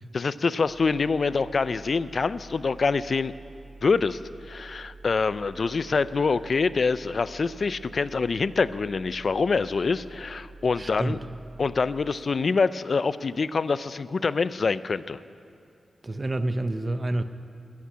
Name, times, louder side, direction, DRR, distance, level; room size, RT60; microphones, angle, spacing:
voice 1, 0.1-3.3 3.8-11.2 11.6-15.2, left 4 dB, 55° left, 15 dB, 0.4 m, -25 dB
sound 1, 0.7-12.1, right 3 dB, 5° right, 1.5 m, -47 dB
voice 2, 10.8-11.2 16.0-17.2, right 1 dB, 30° right, 11 dB, 0.6 m, -28 dB
13.5 x 8.4 x 9.9 m, 2.5 s
wide cardioid pair, 95°, 0 cm